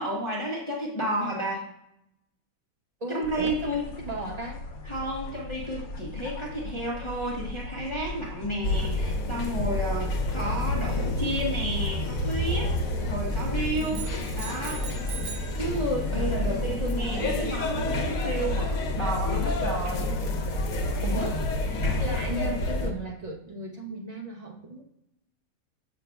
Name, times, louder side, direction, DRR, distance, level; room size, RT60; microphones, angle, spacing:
voice 1, 0.0-1.6 3.1-3.8 4.8-12.7 13.1-14.1 14.4-14.9 15.6-20.1, right 1 dB, 25° left, -4 dB, 1.0 m, -31 dB
voice 2, 3.0-4.6 16.1-17.6 21.0-21.6 22.0-24.8, right 1 dB, 30° right, -1 dB, 1.0 m, -36 dB
sound 1, 3.2-13.6, left 2 dB, 90° left, 1.1 m, -39 dB
sound 2, 8.6-22.9, left 1 dB, 70° left, 1.2 m, -28 dB
sound 3, 13.7-15.6, right 7 dB, 65° right, 1.5 m, -40 dB
6.5 x 6.3 x 2.2 m, 0.81 s
omnidirectional pair, 1.5 m